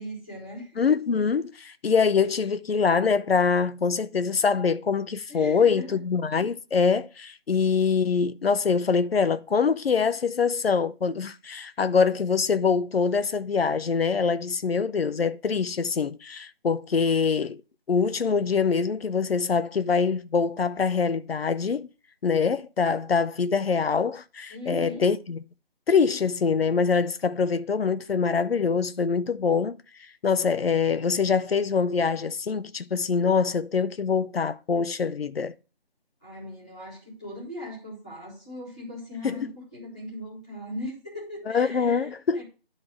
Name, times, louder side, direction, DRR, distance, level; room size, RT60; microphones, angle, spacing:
voice 1, 0.0-0.8 5.3-6.0 24.5-25.1 36.2-42.4, left 1 dB, 5° left, 1.2 m, -39 dB
voice 2, 0.8-17.6 17.9-21.9 22.2-25.4 25.9-29.8 30.2-35.5 39.2-39.4 41.5-42.4, left 5 dB, 85° left, 0.7 m, -24 dB
11.0 x 4.0 x 6.2 m
figure-of-eight pair, 180°, 30 cm